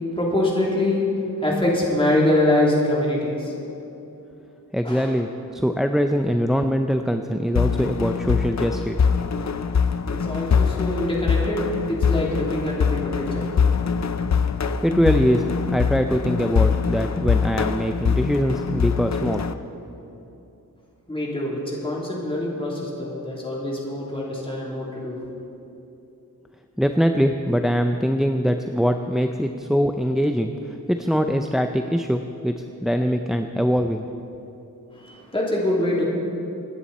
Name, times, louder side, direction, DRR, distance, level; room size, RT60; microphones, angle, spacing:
voice 1, 0.1-1.0 1.4-3.5 4.8-5.1 10.1-13.5 21.1-25.2 34.9-36.1, left 1 dB, 15° left, -4 dB, 3.2 m, -24 dB
voice 2, 4.7-9.0 14.8-19.4 26.8-32.6 32.8-34.1, equal, ahead, 6 dB, 0.5 m, -22 dB
sound 1, 7.6-19.5, left 6 dB, 45° left, 0.6 m, -23 dB
27.0 x 10.5 x 4.2 m, 2.8 s
wide cardioid pair, 100°, 37 cm